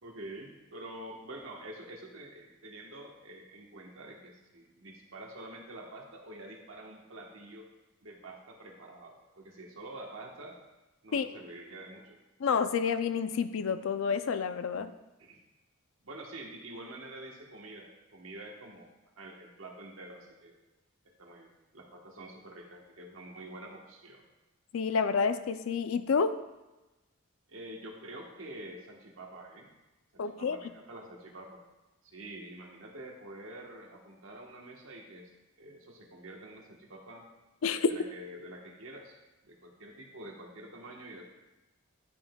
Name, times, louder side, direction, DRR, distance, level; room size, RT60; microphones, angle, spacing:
voice 1, 0.0-7.7 8.0-10.6 11.0-12.2 15.2-15.4 16.0-18.9 19.2-20.6 21.2-24.2 27.5-29.7 30.1-31.6 32.0-35.3 35.6-37.3 37.9-39.1 39.4-41.2, right 1 dB, 75° right, 0 dB, 1.2 m, -47 dB
voice 2, 12.4-14.9 24.7-26.3 30.2-30.6 37.6-37.9, left 5 dB, 75° left, 11 dB, 0.4 m, -29 dB
9.8 x 5.6 x 2.3 m, 1.1 s
head